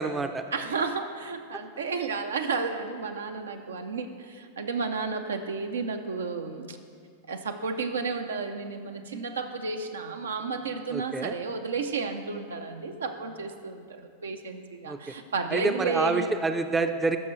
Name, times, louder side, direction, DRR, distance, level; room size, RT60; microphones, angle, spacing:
voice 1, 0.0-0.4 10.9-11.3 14.9-15.0 15.5-17.2, right 3 dB, 15° right, 8 dB, 0.5 m, -27 dB
voice 2, 0.5-6.8 7.3-16.3, right 4 dB, 75° right, 6 dB, 0.6 m, -32 dB
13.5 x 5.9 x 3.2 m, 2.2 s
hypercardioid pair, 95°, 0 cm